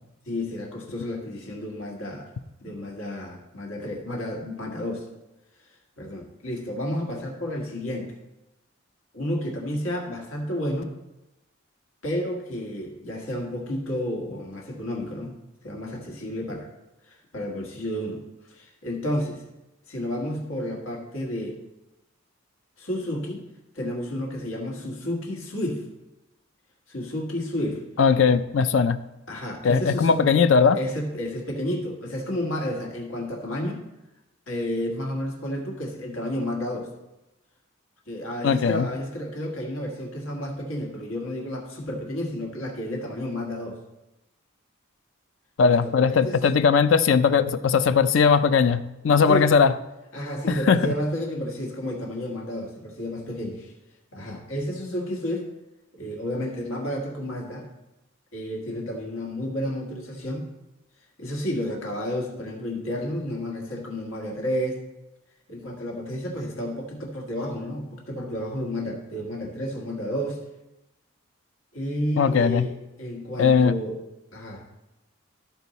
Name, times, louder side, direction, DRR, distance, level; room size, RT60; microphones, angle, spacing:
voice 1, 0.2-2.3 2.6-5.1 6.0-8.1 9.1-10.9 12.0-15.4 15.6-16.7 17.1-18.2 18.5-19.4 19.9-21.6 22.8-23.4 23.7-25.8 26.9-27.8 29.3-30.2 30.8-33.9 34.5-36.9 38.1-43.8 45.6-46.4 49.3-49.5 50.1-53.7 54.1-55.5 55.9-57.7 58.3-60.5 61.2-64.8 65.5-70.4 71.7-74.0 74.3-74.6, equal, 80° left, 1 dB, 1.6 m, -31 dB
voice 2, 28.0-29.0 29.6-30.8 38.4-38.9 45.6-49.7 50.5-50.8 72.2-72.7 73.4-73.7, left 6 dB, 65° left, 12 dB, 0.4 m, -19 dB
13.0 x 4.5 x 4.1 m, 0.97 s
head